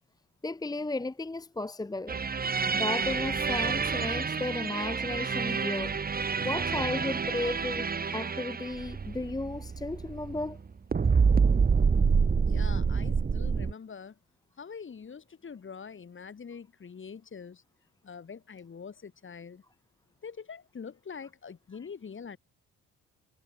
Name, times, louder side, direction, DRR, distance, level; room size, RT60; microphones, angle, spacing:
voice 1, 0.4-2.2 2.7-5.9 6.4-10.6 21.8-21.9, left 2 dB, 15° left, 1.0 m, -34 dB
sound 1, 2.1-10.7 10.9-13.7, right 5 dB, 30° right, 1.6 m, -27 dB
voice 2, 12.4-14.1 14.6-17.6 18.0-19.6 20.2-22.4, left 6 dB, 40° left, 6.2 m, -44 dB
cardioid pair, 90°, 30 cm